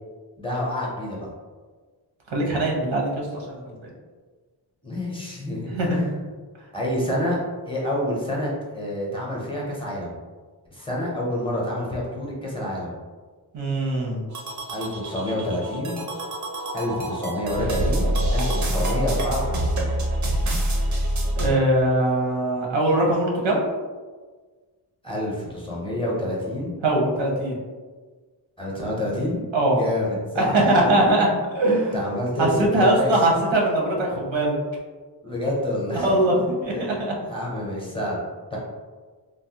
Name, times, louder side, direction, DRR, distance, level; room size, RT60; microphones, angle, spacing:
voice 1, 0.4-1.3 4.8-6.2 6.7-7.4 7.7-8.5 8.7-10.1 10.7-13.0 14.7-16.1 16.7-19.9 25.0-26.7 28.6-29.4 29.7-30.9 31.9-33.1 35.2-36.1 36.7-38.2 38.5-38.6, left 1 dB, 10° left, -5 dB, 0.6 m, -28 dB
voice 2, 2.3-3.9 5.7-6.1 13.5-14.2 21.3-23.6 26.8-27.6 29.5-29.8 30.4-31.3 31.5-32.1 32.4-34.6 35.9-37.1 37.6-37.7, right 1 dB, 85° right, -1 dB, 0.8 m, -21 dB
sound 1, 14.3-21.5, right 1 dB, 45° right, 0.4 m, -25 dB
3.2 x 2.0 x 2.7 m, 1.4 s
wide cardioid pair, 160°, 44 cm